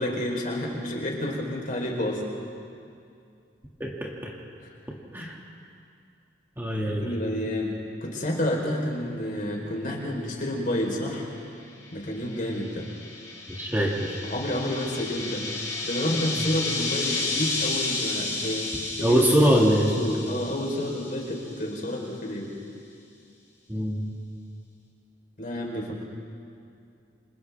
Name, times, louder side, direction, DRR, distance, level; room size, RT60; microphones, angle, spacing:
voice 1, 0.0-2.2 5.1-5.3 6.9-11.3 11.9-12.8 13.8-13.9 14.3-15.4 15.8-18.7 19.0-19.2 19.7-22.5 25.4-26.0, left 1 dB, 45° left, -1 dB, 4.2 m, -30 dB
voice 2, 3.8-4.3 5.1-5.3 6.6-7.1 13.5-14.2 19.0-19.9 23.7-24.0, equal, 10° right, -3 dB, 2.4 m, -23 dB
sound 1, 11.9-21.7, left 3 dB, 20° left, 6.1 m, -32 dB
30.0 x 26.5 x 3.6 m, 2.4 s
head